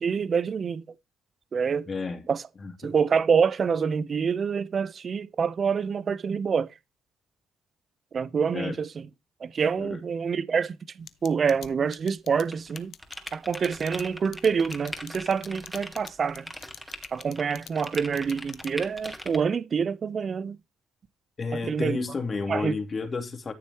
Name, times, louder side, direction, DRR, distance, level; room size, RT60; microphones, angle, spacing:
voice 1, 0.0-0.8 1.5-1.9 2.3-2.4 2.8-6.7 8.1-8.9 9.4-12.9 13.3-16.5 17.1-20.6 21.7-22.0 22.5-22.7, right 6 dB, 45° right, 0.8 m, -26 dB
voice 2, 1.9-2.3 2.6-2.9 8.5-8.8 9.8-10.0 21.4-23.5, left 4 dB, 35° left, 2.7 m, -31 dB
sound 1, 11.1-19.0, left 10 dB, 65° left, 1.0 m, -45 dB
sound 2, 12.5-19.4, left 1 dB, 5° left, 2.7 m, -40 dB
13.5 x 6.8 x 3.0 m
cardioid pair, 85°, 0 cm